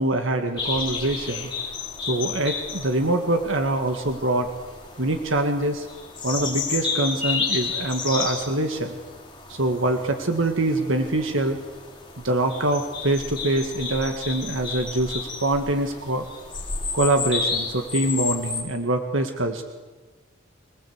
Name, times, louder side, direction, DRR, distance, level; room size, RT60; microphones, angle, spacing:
voice 1, 0.0-1.5 2.1-4.5 5.0-5.9 6.2-8.9 9.5-11.6 12.2-16.3 16.9-19.6, right 2 dB, 75° right, 5 dB, 1.8 m, -24 dB
sound 1, 0.6-18.6, left 5 dB, 25° left, 4.7 m, -32 dB
25.5 x 19.0 x 8.1 m, 1.3 s
head